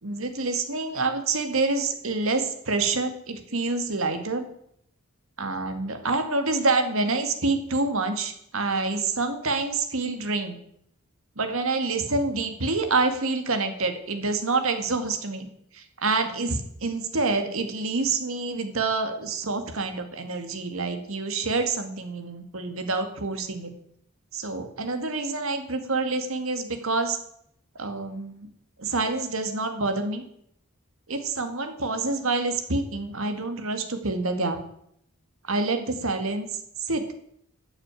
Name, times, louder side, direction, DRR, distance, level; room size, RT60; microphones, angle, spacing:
voice 1, 0.0-4.4 5.4-10.6 11.4-15.5 15.7-23.7 24.3-27.2 27.8-28.5 28.8-30.2 31.1-34.6 35.5-36.5 36.8-37.0, right 3 dB, 75° right, 7 dB, 1.9 m, -27 dB
12.5 x 6.6 x 8.9 m, 0.73 s
head